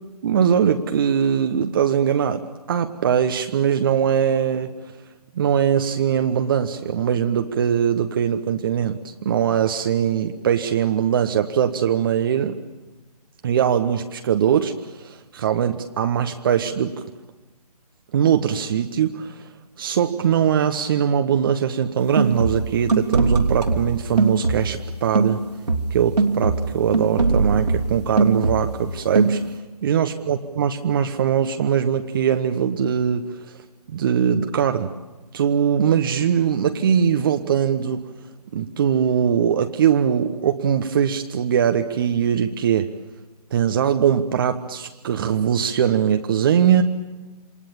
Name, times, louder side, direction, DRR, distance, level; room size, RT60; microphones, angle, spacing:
voice 1, 0.2-4.7 5.3-12.6 13.4-17.0 18.1-19.5 19.8-25.5 25.9-29.4 29.8-33.6 33.9-34.9 35.3-38.1 38.5-42.9 43.5-46.8, right 8 dB, 35° right, 7 dB, 1.1 m, -21 dB
sound 1, 22.0-24.9 25.1-28.9 29.1-29.6, right 3 dB, 75° right, 3.1 m, -21 dB
28.0 x 25.0 x 7.2 m, 1.2 s
figure-of-eight pair, 145°, 21 cm